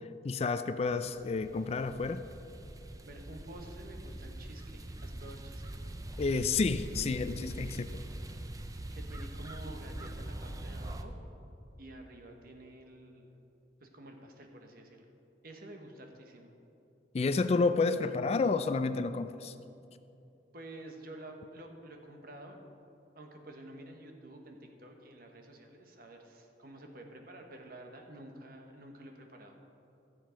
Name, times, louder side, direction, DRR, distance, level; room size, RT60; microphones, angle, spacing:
voice 1, 0.2-2.2 6.2-8.0 17.1-19.5, left 4 dB, 35° left, 11 dB, 0.3 m, -30 dB
sound 1, 0.9-11.0, right 1 dB, 20° right, 0.5 m, -43 dB
voice 2, 3.0-5.8 8.9-11.2 11.8-13.3 13.8-15.0 15.4-16.5 20.5-22.6 23.1-29.6, right 1 dB, 55° right, 3 dB, 1.1 m, -50 dB
13.0 x 7.4 x 5.1 m, 2.8 s
head